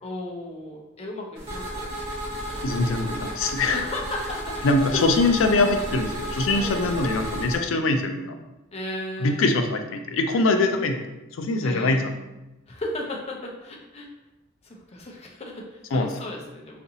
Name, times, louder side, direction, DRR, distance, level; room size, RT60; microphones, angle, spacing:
voice 1, 0.0-1.9 3.7-4.7 4.9-5.0 6.5-6.9 8.7-9.6 11.6-12.1 12.7-14.1 14.6-16.8, left 1 dB, 30° left, 0 dB, 0.5 m, -35 dB
sound 1, 1.4-7.6, equal, 30° right, 1.0 m, -33 dB
voice 2, 2.6-3.8 4.6-8.3 9.2-11.0 11.4-12.1 15.9-16.1, left 2 dB, 85° left, 5 dB, 0.4 m, -23 dB
3.8 x 2.5 x 2.7 m, 1.0 s
head